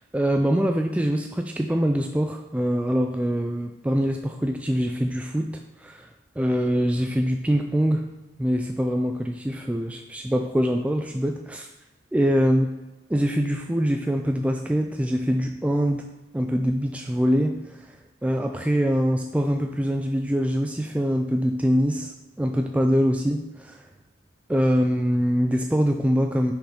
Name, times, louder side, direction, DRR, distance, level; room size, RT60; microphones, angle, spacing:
voice 1, 0.0-6.1 6.4-8.0 8.4-11.7 12.1-12.7 13.1-18.0 18.2-22.1 22.4-23.8 24.5-26.5, equal, 5° right, 3 dB, 0.3 m, -24 dB
6.3 x 5.1 x 4.9 m, 1.1 s
head